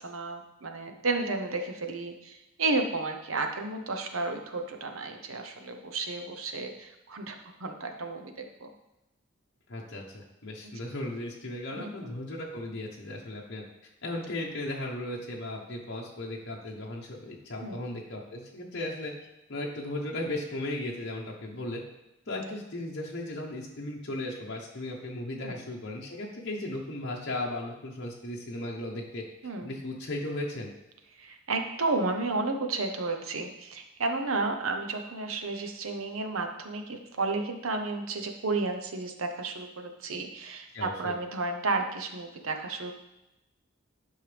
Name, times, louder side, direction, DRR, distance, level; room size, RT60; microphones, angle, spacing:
voice 1, 0.0-8.7 10.6-10.7 11.7-12.1 17.6-17.8 25.4-25.6 29.4-29.7 31.2-42.9, right 3 dB, 80° right, 5 dB, 1.0 m, -32 dB
voice 2, 9.7-13.6 14.0-19.1 19.5-21.8 22.3-29.2 29.6-30.7 40.7-41.1, left 1 dB, 55° left, -2 dB, 1.1 m, -36 dB
10.5 x 5.6 x 3.5 m, 0.91 s
head